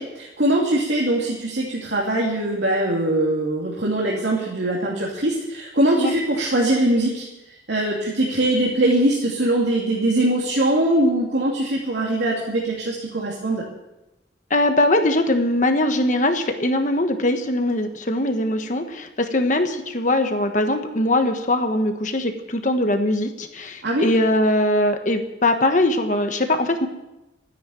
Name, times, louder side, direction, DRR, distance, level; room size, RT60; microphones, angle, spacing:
voice 1, 0.0-13.7 23.8-24.1, right 1 dB, 85° right, -3 dB, 2.7 m, -22 dB
voice 2, 14.5-26.9, left 1 dB, 45° left, 6 dB, 1.3 m, -21 dB
13.0 x 10.0 x 9.1 m, 0.96 s
head